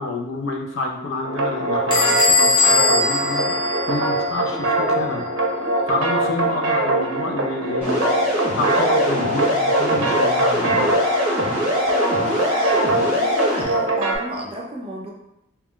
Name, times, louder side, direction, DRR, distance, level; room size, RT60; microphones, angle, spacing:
voice 1, 0.0-5.3 5.9-8.0 8.6-10.9, left 2 dB, 75° left, 2 dB, 0.5 m, -28 dB
sound 1, 1.2-14.2, right 2 dB, 90° right, 0.5 m, -22 dB
Bell / Door, 1.9-4.4, left 3 dB, 25° left, 0.5 m, -20 dB
voice 2, 4.5-4.8 5.5-6.0 11.9-15.1, right 1 dB, 30° right, -1 dB, 0.4 m, -33 dB
sound 2, 7.8-13.6, left 1 dB, 5° right, 0.9 m, -23 dB
2.2 x 2.1 x 3.7 m, 0.81 s
head